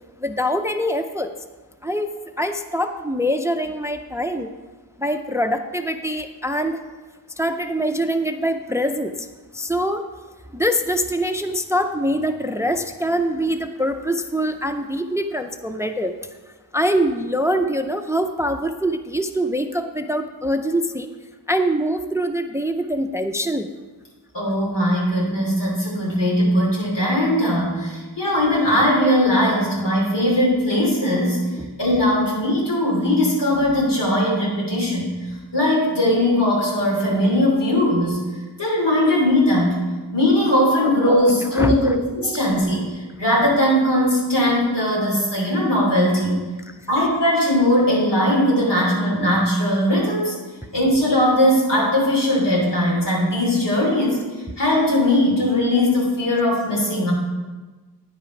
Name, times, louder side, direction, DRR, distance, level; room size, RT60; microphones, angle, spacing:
voice 1, 0.2-1.3 1.8-2.1 2.4-4.5 5.0-6.8 7.4-9.2 9.5-10.0 10.5-16.1 16.7-21.1 21.5-23.7 31.6-31.7 41.5-42.0, equal, 5° right, 7 dB, 0.4 m, -23 dB
voice 2, 24.3-31.5 31.8-35.2 35.5-38.2 38.6-39.8 40.1-46.4 46.9-50.4 50.7-54.2 54.6-57.1, left 1 dB, 90° left, -5 dB, 3.0 m, -19 dB
9.4 x 5.7 x 5.1 m, 1.3 s
wide cardioid pair, 75°, 41 cm